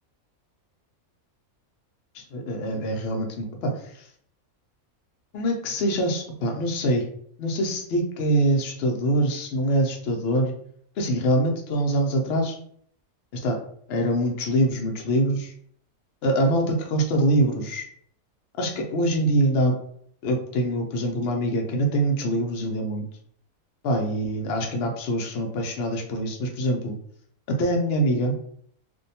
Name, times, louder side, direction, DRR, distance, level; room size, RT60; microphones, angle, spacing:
voice 1, 2.1-3.7 5.3-7.0 7.4-10.5 11.0-12.6 13.3-13.6 13.9-15.5 16.2-17.9 18.6-19.7 20.2-23.1 23.8-27.0 27.6-28.3, right 1 dB, 65° left, 2 dB, 0.6 m, -24 dB
2.6 x 2.1 x 2.7 m, 0.63 s
omnidirectional pair, 1.5 m